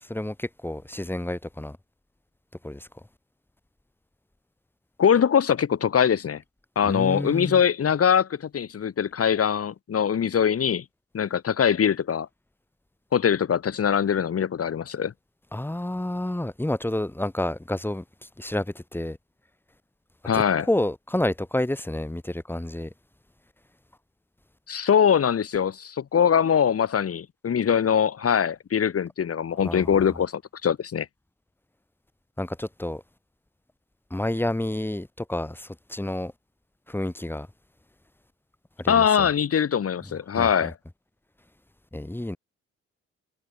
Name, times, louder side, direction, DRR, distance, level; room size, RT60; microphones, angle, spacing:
voice 1, 0.0-1.8 2.6-2.9 6.8-7.6 15.5-18.0 18.4-19.2 20.3-22.9 29.6-30.0 32.4-33.0 34.1-36.3 36.9-37.5 38.8-39.3 40.3-40.7 41.9-42.4, left 1 dB, 5° left, 2.8 m, -29 dB
voice 2, 5.0-6.4 6.7-10.8 11.1-12.3 13.1-15.1 20.2-20.7 24.7-31.1 38.9-40.7, left 8 dB, 50° left, 3.4 m, -22 dB
cardioid pair, 90°, 30 cm